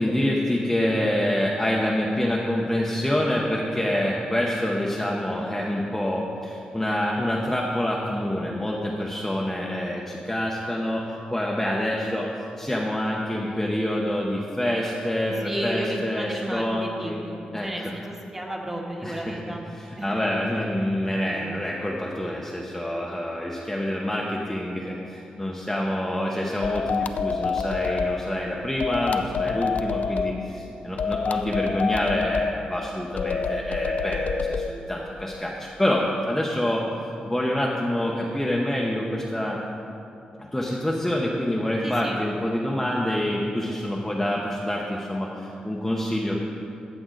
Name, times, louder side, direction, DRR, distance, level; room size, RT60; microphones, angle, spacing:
voice 1, 0.0-12.3 12.6-17.2 17.5-17.9 19.0-19.4 19.8-36.9 37.2-39.6 40.4-46.4, left 1 dB, 5° left, -3 dB, 0.8 m, -27 dB
voice 2, 15.4-19.6 19.9-20.4 41.8-42.2, right 1 dB, 15° right, -1 dB, 1.5 m, -33 dB
sound 1, 26.6-28.2 28.8-30.3 31.0-32.5 33.2-34.7, left 5 dB, 60° left, 0.4 m, -26 dB
14.5 x 7.7 x 3.9 m, 2.8 s
wide cardioid pair, 115°, 3 cm